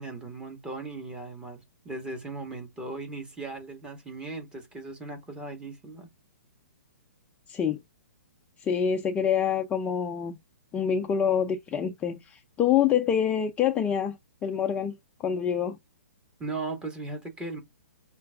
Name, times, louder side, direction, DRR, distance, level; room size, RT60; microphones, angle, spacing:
voice 1, 0.0-6.1 16.4-17.6, right 3 dB, 10° right, 1.1 m, -37 dB
voice 2, 7.5-7.8 8.6-10.4 10.7-14.2 14.4-15.8, left 8 dB, 15° left, 0.3 m, -26 dB
5.5 x 2.5 x 2.3 m
hypercardioid pair, 135°, 9 cm